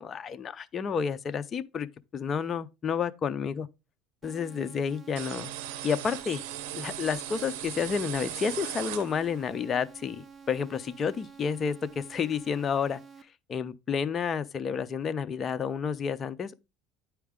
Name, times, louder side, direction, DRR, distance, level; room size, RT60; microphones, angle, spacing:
voice 1, 0.0-3.7 4.2-5.5 5.8-6.4 6.7-13.0 13.5-16.5, left 6 dB, 30° left, 0.5 m, -30 dB
sound 1, 4.2-13.2, right 6 dB, 25° right, 0.6 m, -50 dB
sound 2, 5.2-9.5, right 13 dB, 85° right, 0.7 m, -38 dB
9.4 x 4.5 x 3.6 m
supercardioid pair, 125°, 0 cm